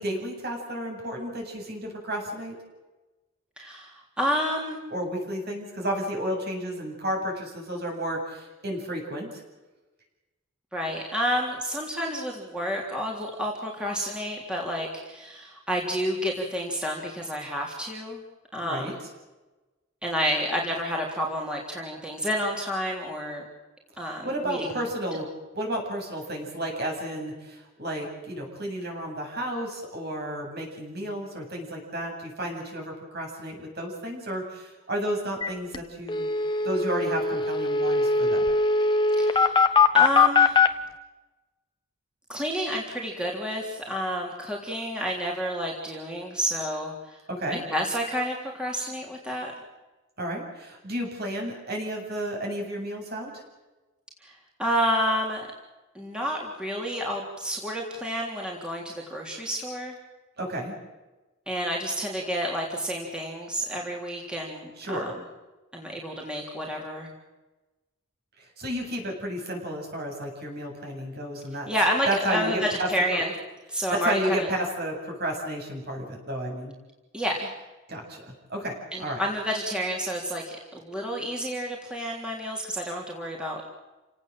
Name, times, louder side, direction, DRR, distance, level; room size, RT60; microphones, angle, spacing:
voice 1, 0.0-2.6 4.9-9.4 18.6-18.9 24.2-25.3 25.5-36.3 36.6-38.5 47.3-47.6 50.2-53.3 60.4-60.8 64.8-65.1 68.4-71.7 72.1-73.2 74.0-76.7 77.9-78.2 78.5-79.2, right 1 dB, 50° right, 1 dB, 7.8 m, -32 dB
voice 2, 3.6-4.8 10.7-18.2 18.5-19.0 20.0-23.4 24.0-24.8 39.2-40.6 42.3-47.2 47.5-49.5 54.2-55.5 56.0-60.0 61.5-65.1 65.7-67.1 71.7-73.3 73.7-74.5 77.1-77.5 78.9-83.7, equal, 5° right, -2 dB, 3.5 m, -30 dB
sound 1, 35.4-35.5 35.7-35.8 36.1-40.7, left 4 dB, 20° left, 1.3 m, -21 dB
29.5 x 18.0 x 7.8 m, 1.1 s
head